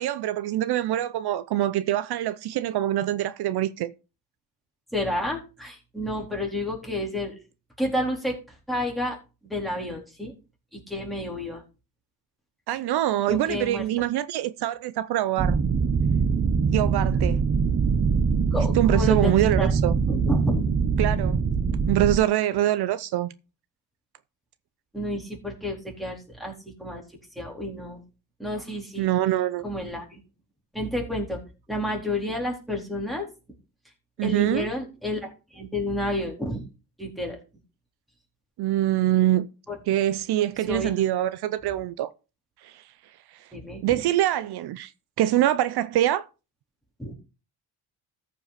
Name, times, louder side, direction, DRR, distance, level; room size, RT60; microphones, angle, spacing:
voice 1, 0.0-3.9 12.7-15.6 16.7-17.4 18.7-19.9 21.0-21.4 21.9-23.3 29.0-29.6 34.2-34.7 38.6-39.5 39.9-42.1 42.6-42.8 43.3-43.5 43.8-44.9 45.2-46.2, right 13 dB, 70° right, 0.6 m, -24 dB
voice 2, 4.9-7.4 7.8-8.4 8.7-9.2 9.5-10.3 10.7-11.6 13.3-13.8 18.5-19.8 20.1-20.6 24.9-26.5 26.8-27.0 27.4-28.0 28.4-29.1 29.6-30.2 30.7-31.4 31.7-33.3 34.2-36.7 37.0-37.4 39.7-39.8 40.7-40.9 43.5-44.0 47.0-47.1, left 1 dB, ahead, 3.8 m, -30 dB
sound 1, 15.4-22.2, right 5 dB, 30° right, 1.0 m, -23 dB
14.0 x 5.5 x 4.1 m
cardioid pair, 110°, 41 cm